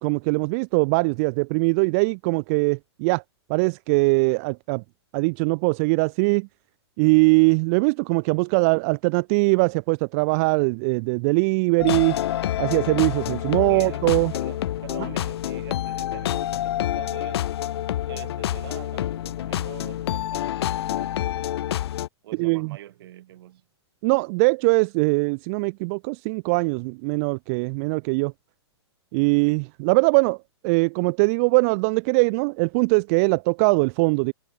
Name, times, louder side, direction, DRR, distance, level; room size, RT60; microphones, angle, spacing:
voice 1, 0.0-3.2 3.5-4.8 5.1-6.5 7.0-12.2 12.6-14.3 22.4-22.8 24.0-28.3 29.1-30.4 30.6-34.3, right 31 dB, 35° right, 0.5 m, -21 dB
Nebula -techno house minitrack, 11.8-22.1, left 12 dB, 60° left, 1.2 m, -28 dB
voice 2, 13.7-17.5 18.1-21.3 22.2-23.7, right 13 dB, 55° right, 6.4 m, -45 dB
hypercardioid pair, 145°, 15 cm